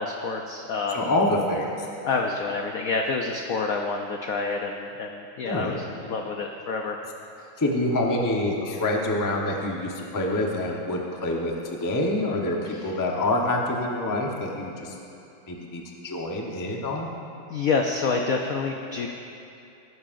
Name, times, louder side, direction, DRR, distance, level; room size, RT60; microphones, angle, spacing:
voice 1, 0.0-1.1 2.0-7.0 12.6-13.0 17.5-19.1, left 4 dB, 75° left, 2 dB, 0.8 m, -28 dB
voice 2, 0.9-1.9 5.4-5.8 7.6-14.9 15.5-17.1, left 1 dB, 25° left, -1 dB, 0.4 m, -26 dB
17.5 x 9.5 x 2.6 m, 2.7 s
omnidirectional pair, 2.1 m